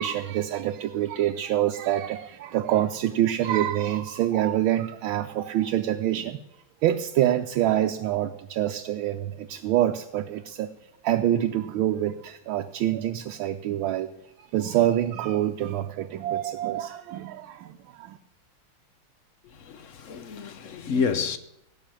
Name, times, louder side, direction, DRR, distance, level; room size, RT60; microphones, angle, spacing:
voice 1, 0.0-6.4 6.8-10.7 11.0-14.1 14.4-18.2, right 12 dB, 75° right, 1.4 m, -26 dB
voice 2, 19.4-21.4, left 5 dB, 60° left, 0.8 m, -29 dB
17.0 x 5.8 x 9.0 m
omnidirectional pair, 2.3 m